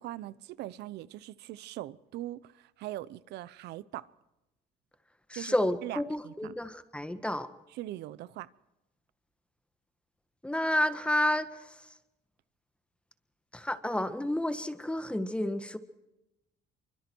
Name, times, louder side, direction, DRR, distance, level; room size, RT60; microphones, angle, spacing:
voice 1, 0.0-4.1 5.3-5.6 5.8-6.6 7.7-8.5, right 15 dB, 80° right, 0.9 m, -41 dB
voice 2, 5.3-7.5 10.4-11.5 13.5-15.8, left 1 dB, 5° left, 1.6 m, -30 dB
26.5 x 24.5 x 4.7 m
cardioid pair, 110°, 17 cm